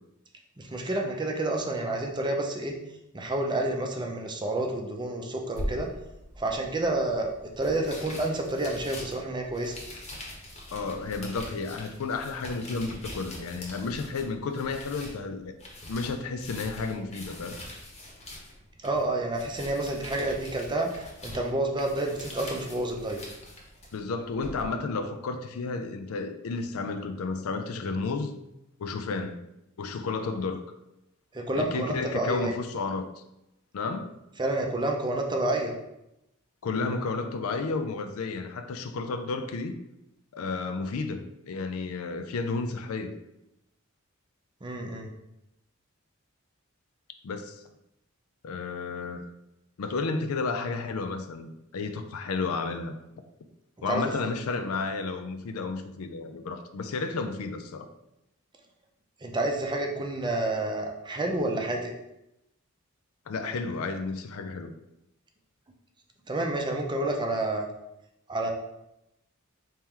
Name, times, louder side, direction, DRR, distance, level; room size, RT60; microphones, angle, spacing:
voice 1, 0.6-2.7 3.1-5.9 6.4-7.3 7.6-9.8 18.8-23.2 31.3-32.5 34.4-35.8 44.6-45.1 53.9-54.1 59.2-61.9 66.3-67.7 68.3-68.5, right 2 dB, 20° right, 2 dB, 0.5 m, -29 dB
sound 1, 5.5-24.6, left 1 dB, 30° left, 1.0 m, -43 dB
voice 2, 10.7-15.5 15.9-17.6 23.9-28.3 28.8-29.4 29.8-30.6 31.5-33.1 33.7-34.1 36.6-39.7 40.3-41.2 41.5-43.2 47.2-47.6 48.4-49.2 49.8-53.0 53.8-57.9 63.3-64.7, left 4 dB, 75° left, 8 dB, 0.4 m, -32 dB
4.4 x 2.9 x 3.7 m, 0.86 s
head